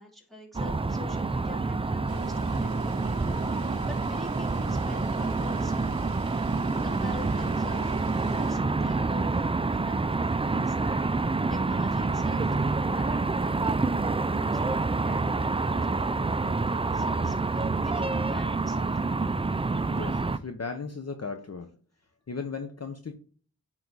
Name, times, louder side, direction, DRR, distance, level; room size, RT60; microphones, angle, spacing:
voice 1, 0.0-5.7 6.8-9.5 9.7-19.1, left 2 dB, ahead, -1 dB, 2.7 m, -46 dB
sound 1, 0.5-20.4, right 3 dB, 15° right, 0.3 m, -27 dB
sound 2, 2.1-8.6, right 8 dB, 75° right, 0.6 m, -44 dB
voice 2, 19.9-21.7 22.3-23.1, left 4 dB, 45° left, 6 dB, 0.8 m, -36 dB
9.3 x 3.8 x 4.0 m, 0.44 s
wide cardioid pair, 65°, 36 cm